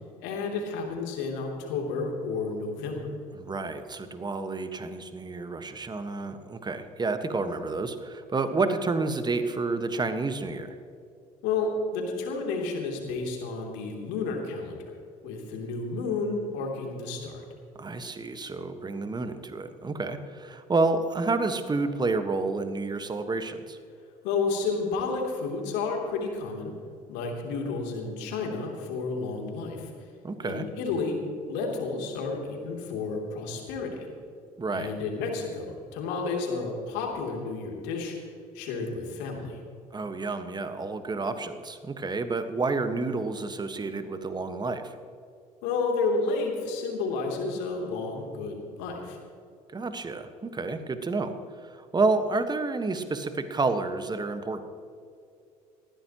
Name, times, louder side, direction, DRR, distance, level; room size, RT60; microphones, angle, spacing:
voice 1, 0.2-3.1 11.4-14.9 15.2-17.4 24.2-26.7 27.1-29.9 30.4-31.2 31.5-34.0 34.7-38.3 38.5-39.6 45.6-49.2, left 4 dB, 65° left, 1 dB, 3.1 m, -31 dB
voice 2, 3.3-10.7 17.8-23.8 30.2-30.6 34.6-34.9 39.9-44.9 49.7-51.3 51.6-54.7, right 3 dB, 20° right, 9 dB, 1.4 m, -29 dB
20.0 x 15.5 x 3.0 m, 2.5 s
figure-of-eight pair, 60°, 20 cm